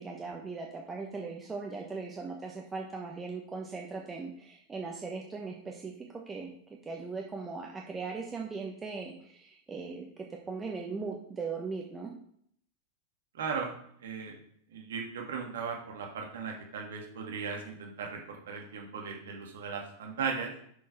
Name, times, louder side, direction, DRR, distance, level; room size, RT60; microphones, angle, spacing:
voice 1, 0.0-12.1, right 4 dB, 15° right, 0 dB, 1.1 m, -39 dB
voice 2, 13.3-13.7 14.0-14.4 14.7-20.5, right 5 dB, 60° right, 1 dB, 1.5 m, -37 dB
6.4 x 6.3 x 4.5 m, 0.67 s
figure-of-eight pair, 90°, 0 cm